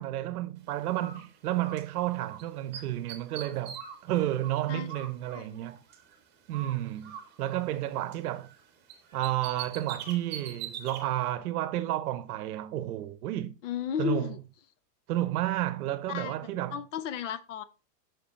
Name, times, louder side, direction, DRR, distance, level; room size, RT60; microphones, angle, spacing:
voice 1, 0.0-5.8 6.5-8.5 9.1-13.5 14.0-14.3 15.1-16.8, right 14 dB, 65° right, 0.9 m, -31 dB
Bird, 0.9-2.4 2.7-6.2 6.5-8.6 8.9-11.0, right 8 dB, 20° right, 1.4 m, -43 dB
voice 2, 13.6-14.4 16.1-16.3 16.7-17.6, left 8 dB, 50° left, 0.7 m, -33 dB
6.1 x 5.4 x 4.1 m
supercardioid pair, 165°, 49 cm